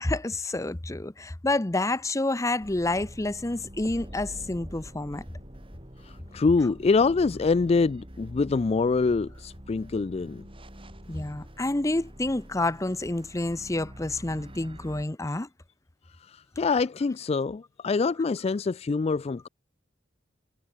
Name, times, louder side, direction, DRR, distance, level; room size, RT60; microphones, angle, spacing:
voice 1, 0.0-5.2 11.1-15.5, left 2 dB, 15° left, 0.7 m, -29 dB
sound 1, 2.6-15.1, equal, 30° right, 5.3 m, -45 dB
voice 2, 6.0-10.4 16.3-19.5, left 4 dB, 35° left, 0.3 m, -25 dB
head